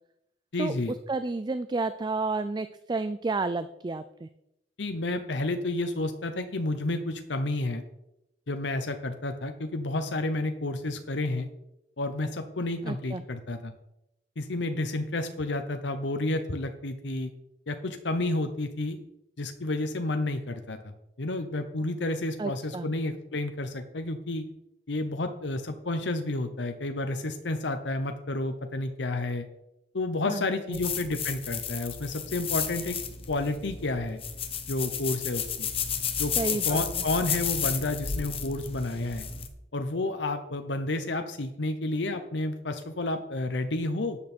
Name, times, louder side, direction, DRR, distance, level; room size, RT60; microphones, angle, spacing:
voice 1, 0.5-0.9 4.8-7.8 8.5-11.5 12.0-13.7 14.4-17.3 17.7-19.0 19.4-20.9 21.2-24.4 24.9-29.4 29.9-33.0 33.3-34.2 34.7-35.7 36.2-39.3 39.7-44.2, left 2 dB, 85° left, 7 dB, 0.9 m, -30 dB
voice 2, 1.1-4.3 12.8-13.2 22.4-22.9 30.3-30.8 36.4-36.8, right 3 dB, 25° right, 12 dB, 0.4 m, -31 dB
sound 1, 30.7-39.5, left 7 dB, 35° left, 1.1 m, -32 dB
12.5 x 8.6 x 4.4 m, 0.86 s
head